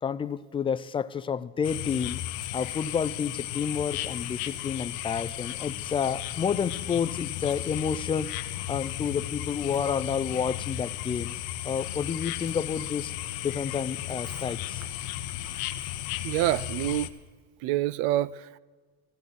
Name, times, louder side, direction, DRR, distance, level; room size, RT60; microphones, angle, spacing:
voice 1, 0.0-2.2 2.5-11.3 11.6-13.1 13.4-14.8, left 7 dB, 15° left, 0.3 m, -30 dB
sound 1, 1.6-17.1, left 13 dB, 70° left, 0.9 m, -35 dB
voice 2, 16.2-17.1 17.6-18.6, right 15 dB, 65° right, 0.5 m, -27 dB
15.5 x 14.5 x 4.0 m
supercardioid pair, 120°, 32 cm